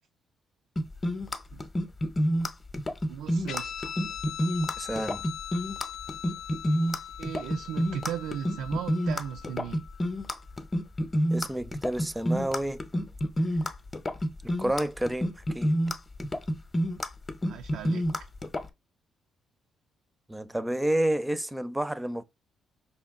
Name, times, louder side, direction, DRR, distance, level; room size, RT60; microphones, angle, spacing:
sound 1, 0.8-18.7, equal, 25° left, 0.7 m, -28 dB
voice 1, 3.1-3.9 7.2-9.8 17.4-18.1, right 10 dB, 85° right, 0.3 m, -37 dB
Guitar, 3.5-10.4, left 10 dB, 75° left, 0.6 m, -41 dB
voice 2, 4.8-5.2 11.3-12.8 14.6-15.8 20.3-22.2, right 1 dB, 10° right, 0.5 m, -30 dB
5.3 x 2.2 x 3.6 m
cardioid pair, 90°, 0 cm